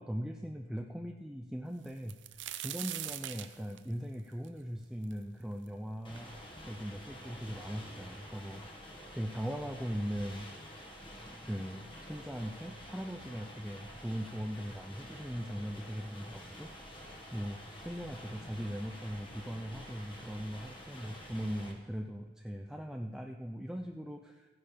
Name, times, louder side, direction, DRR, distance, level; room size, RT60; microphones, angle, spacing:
voice 1, 0.0-6.3 6.6-8.6 9.2-10.5 11.4-16.7 17.3-24.5, equal, 5° right, 3 dB, 0.5 m, -40 dB
sound 1, 1.8-5.7 6.2-6.3 7.0-7.1 7.4-8.0 8.9-9.0 9.4-9.6, right 12 dB, 70° right, 0.7 m, -42 dB
sound 2, 6.0-21.7, equal, 25° left, 1.7 m, -49 dB
15.0 x 9.9 x 5.1 m, 1.3 s
head